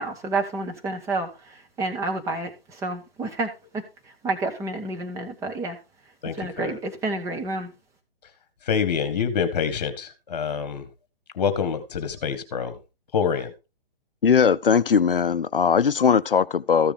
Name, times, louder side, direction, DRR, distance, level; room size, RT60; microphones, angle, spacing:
voice 1, 0.0-3.8 4.2-5.8 6.2-7.7, right 2 dB, 10° right, 1.2 m, -29 dB
voice 2, 6.2-6.7 8.7-10.8 11.4-12.7 13.1-13.5, left 6 dB, 45° left, 1.7 m, -26 dB
voice 3, 14.2-16.9, left 6 dB, 65° left, 0.6 m, -19 dB
14.0 x 7.0 x 3.5 m
figure-of-eight pair, 130°, 29 cm